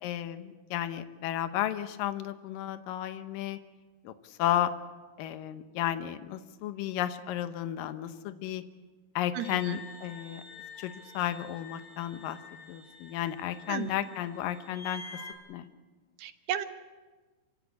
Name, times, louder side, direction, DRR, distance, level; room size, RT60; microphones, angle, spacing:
voice 1, 0.0-3.6 4.0-4.1 4.4-4.7 5.2-8.6 9.2-10.4 10.8-12.4 12.7-15.0 15.5-15.7, left 12 dB, 70° left, 10 dB, 2.4 m, -33 dB
voice 2, 9.3-9.8 13.7-13.9 16.2-16.7, right 10 dB, 80° right, 8 dB, 3.1 m, -34 dB
sound 1, 9.4-15.3, left 4 dB, 35° left, 4.0 m, -48 dB
27.0 x 16.5 x 8.4 m, 1.3 s
omnidirectional pair, 4.7 m